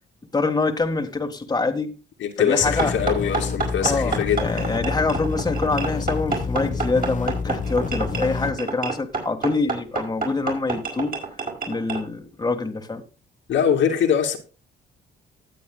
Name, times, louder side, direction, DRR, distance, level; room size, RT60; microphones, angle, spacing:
voice 1, 0.3-2.0 2.4-2.9 3.8-11.2 11.7-13.0, left 3 dB, 20° left, 1.7 m, -25 dB
voice 2, 2.2-4.6 13.5-14.4, left 8 dB, 75° left, 2.5 m, -22 dB
sound 1, 2.6-8.5, left 4 dB, 40° left, 1.2 m, -28 dB
sound 2, 2.8-12.0, right 4 dB, 45° right, 5.2 m, -29 dB
19.0 x 7.8 x 2.3 m
cardioid pair, 90°, 20 cm